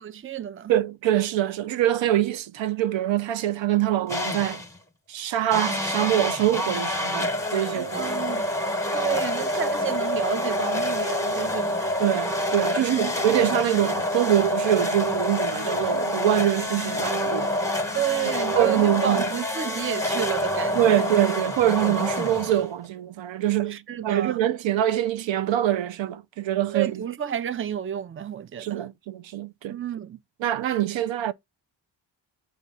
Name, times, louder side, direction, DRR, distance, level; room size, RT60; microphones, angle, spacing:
voice 1, 0.0-0.7 7.8-8.5 8.9-11.7 12.7-13.3 17.9-21.0 23.7-24.4 26.7-28.8 29.7-30.2, right 10 dB, 30° right, 0.5 m, -30 dB
voice 2, 0.7-4.6 5.1-8.0 12.0-17.5 18.5-19.2 20.8-27.0 28.6-29.8 30.4-31.3, right 12 dB, 75° right, 0.6 m, -24 dB
sound 1, 4.1-4.8 5.5-22.9, left 1 dB, 5° left, 1.1 m, -27 dB
7.1 x 2.5 x 5.3 m
cardioid pair, 75°, 45 cm